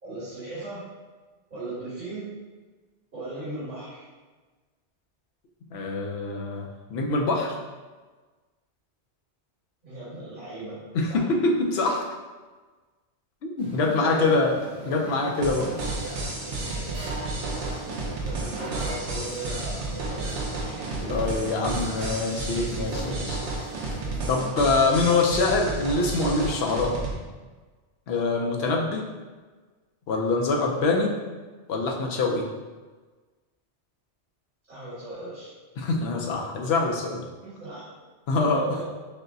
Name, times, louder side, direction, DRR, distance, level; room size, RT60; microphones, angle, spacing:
voice 1, 0.0-0.8 1.5-2.3 3.1-4.0 9.8-10.8 11.1-11.2 13.7-14.4 18.2-21.1 34.7-35.5 37.4-37.8 38.4-38.9, right 2 dB, 50° right, -13 dB, 1.8 m, -37 dB
voice 2, 5.7-7.6 10.9-12.1 13.4-14.5 14.9-15.7 21.1-23.4 24.3-27.0 28.1-29.1 30.1-31.2 31.7-32.5 35.8-37.2 38.3-38.6, left 3 dB, 70° left, 1 dB, 0.8 m, -24 dB
sound 1, 13.6-24.4, right 2 dB, 30° right, 0.8 m, -40 dB
sound 2, 15.4-27.1, right 2 dB, 80° right, 1.0 m, -32 dB
6.3 x 2.1 x 2.6 m, 1.3 s
omnidirectional pair, 1.1 m